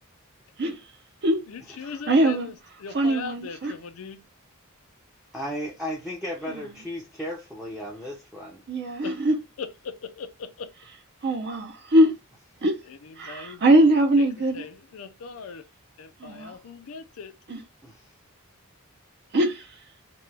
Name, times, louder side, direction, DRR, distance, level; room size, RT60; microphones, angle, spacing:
voice 1, 1.5-4.2 9.0-9.2 9.6-10.7 12.9-14.3 14.5-15.7 16.0-17.3, left 5 dB, 75° left, 0.5 m, -39 dB
voice 2, 2.1-2.5 2.9-3.7 8.7-9.3 11.2-12.1 12.6-12.8 13.2-14.6 16.2-16.5 17.5-17.6 19.3-19.6, right 1 dB, 50° right, 0.5 m, -21 dB
voice 3, 5.3-8.6 17.8-18.1, equal, ahead, 0.5 m, -35 dB
2.9 x 2.2 x 3.3 m
head